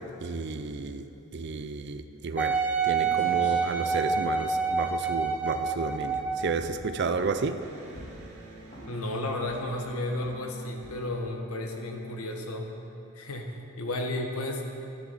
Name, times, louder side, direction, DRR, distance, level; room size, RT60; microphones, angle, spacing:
voice 1, 0.2-7.6, right 4 dB, 50° right, 9 dB, 0.4 m, -32 dB
Wind instrument woodwind instrument, 2.4-6.7 7.3-7.4, right 5 dB, 10° right, 0.7 m, -27 dB
sound 1, 3.0-5.6 6.0-6.2 6.6-7.5 8.0-8.3 8.7-9.1 9.4-9.8 10.2-10.4 10.8-11.2, equal, 30° left, 2.0 m, -46 dB
Electric guitar, 7.6-13.1, right 1 dB, 80° right, 1.8 m, -48 dB
voice 2, 8.8-12.7 13.1-14.6, left 1 dB, 75° left, 2 dB, 1.2 m, -33 dB
12.5 x 10.5 x 4.1 m, 2.8 s
head